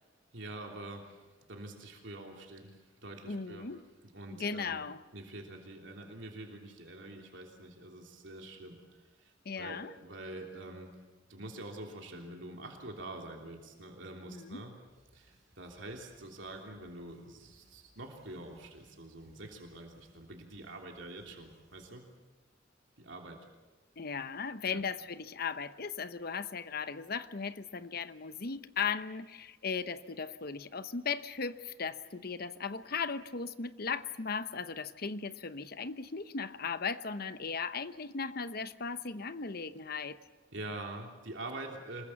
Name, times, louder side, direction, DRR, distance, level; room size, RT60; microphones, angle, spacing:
voice 1, 0.3-1.2 1.5-3.7 4.1-4.8 5.1-10.9 11.3-14.7 15.1-22.0 23.0-23.4 24.6-24.8 40.5-42.0, right 2 dB, 70° right, 1 dB, 3.2 m, -46 dB
voice 2, 3.3-3.8 4.3-5.0 9.4-9.9 14.3-14.6 24.0-40.2, left 5 dB, 50° left, 12 dB, 0.9 m, -37 dB
sound 1, 14.9-21.9, right 1 dB, 40° right, 6.9 m, -67 dB
26.5 x 21.0 x 7.3 m, 1.2 s
head